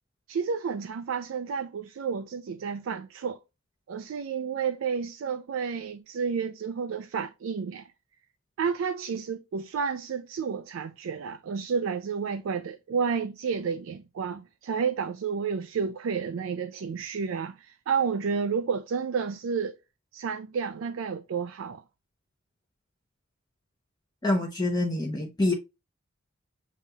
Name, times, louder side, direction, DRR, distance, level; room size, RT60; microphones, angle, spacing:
voice 1, 0.3-3.4 3.9-7.9 8.6-19.7 20.1-21.8, right 6 dB, 75° right, 0.4 m, -31 dB
voice 2, 24.2-25.5, left 2 dB, 20° left, 0.6 m, -26 dB
7.1 x 2.8 x 2.3 m
head